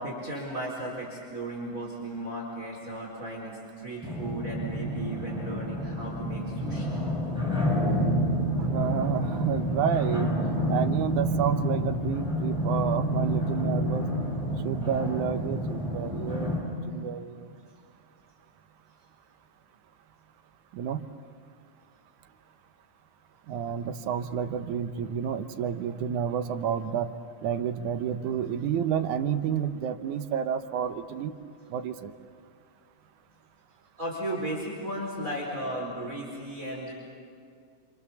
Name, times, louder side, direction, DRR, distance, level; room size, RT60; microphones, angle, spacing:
voice 1, 0.0-7.0 34.0-36.9, right 1 dB, 25° right, -3 dB, 5.1 m, -35 dB
sound 1, 4.0-16.6, equal, ahead, 7.7 m, -29 dB
voice 2, 8.7-10.3 10.7-14.1 14.6-17.5 20.7-21.1 23.5-27.1 27.4-31.3 31.7-32.1, right 8 dB, 85° right, 9 dB, 2.5 m, -30 dB
28.5 x 27.0 x 7.1 m, 2.2 s
omnidirectional pair, 3.4 m